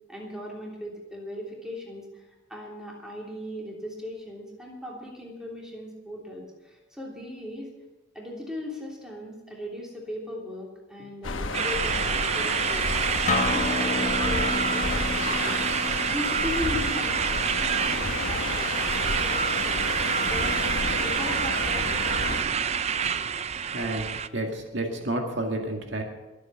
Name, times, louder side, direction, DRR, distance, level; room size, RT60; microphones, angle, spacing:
voice 1, 0.1-7.7 8.1-12.9 13.2-15.6 16.1-22.5, left 1 dB, 5° right, -3 dB, 3.2 m, -38 dB
sound 1, 11.2-22.4, left 3 dB, 80° left, 1.2 m, -31 dB
sound 2, 11.5-24.3, right 7 dB, 30° right, 0.4 m, -27 dB
Acoustic guitar, 13.3-18.5, left 2 dB, 35° left, 1.3 m, -32 dB
voice 2, 23.7-26.0, right 1 dB, 65° right, 2 dB, 2.0 m, -30 dB
23.0 x 8.4 x 5.8 m, 1.1 s
head